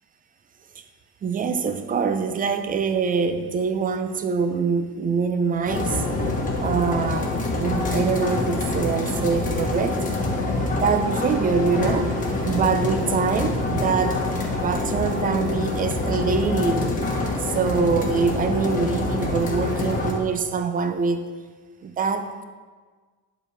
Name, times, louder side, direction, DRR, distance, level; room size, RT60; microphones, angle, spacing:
voice 1, 1.2-6.0 6.6-10.0 10.7-12.1 12.4-14.2 14.6-17.0 17.4-21.2 21.8-22.4, right 5 dB, 25° right, 8 dB, 0.5 m, -24 dB
sound 1, 5.7-20.1, left 2 dB, 20° left, 1.3 m, -26 dB
9.9 x 7.3 x 3.3 m, 1.5 s
cardioid pair, 155°, 38 cm